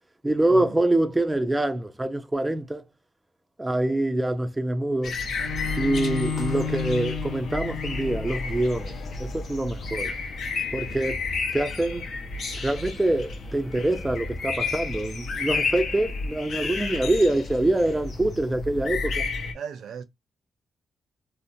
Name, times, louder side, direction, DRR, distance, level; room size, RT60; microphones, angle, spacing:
voice 1, 0.2-2.8 3.6-5.2 5.8-8.9 9.2-10.1 10.7-11.2 11.5-12.1 12.6-19.3, right 1 dB, 10° right, 0.3 m, -25 dB
sound 1, 5.0-19.5, left 4 dB, 60° left, 0.7 m, -32 dB
Bowed string instrument, 5.4-10.6, left 6 dB, 85° left, 0.4 m, -33 dB
voice 2, 19.5-20.0, right 7 dB, 80° right, 0.4 m, -37 dB
2.6 x 2.1 x 2.5 m
cardioid pair, 115°, 0 cm